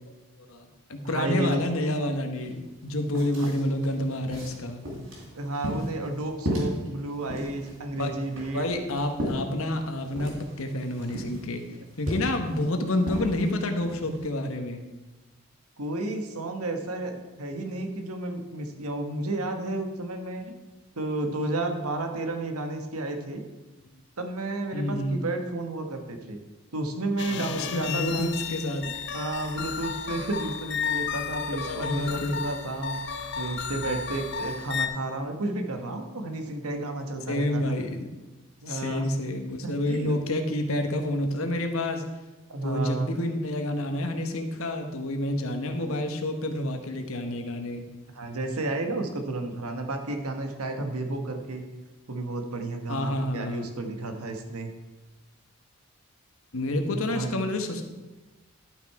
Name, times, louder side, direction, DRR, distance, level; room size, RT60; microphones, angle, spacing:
voice 1, 0.4-4.8 8.0-8.1 8.5-11.6 12.0-14.8 24.7-25.3 27.3-29.0 31.5-32.4 37.3-38.1 38.7-42.0 42.6-47.8 52.9-53.7 56.5-57.8, left 1 dB, 70° left, 6 dB, 1.1 m, -29 dB
voice 2, 1.1-1.6 3.4-3.5 5.3-8.7 15.8-20.5 21.0-23.4 24.2-26.4 26.7-28.3 29.1-33.0 33.4-37.6 38.6-39.1 39.6-40.1 42.5-43.1 48.1-51.6 52.1-54.7 57.1-57.3, right 2 dB, 85° right, 5 dB, 1.2 m, -32 dB
sound 1, 2.4-2.5 2.8-14.3, equal, 70° right, 3.3 m, -36 dB
sound 2, 27.2-34.9, left 6 dB, 50° left, 0.6 m, -33 dB
11.5 x 6.0 x 4.7 m, 1.1 s
head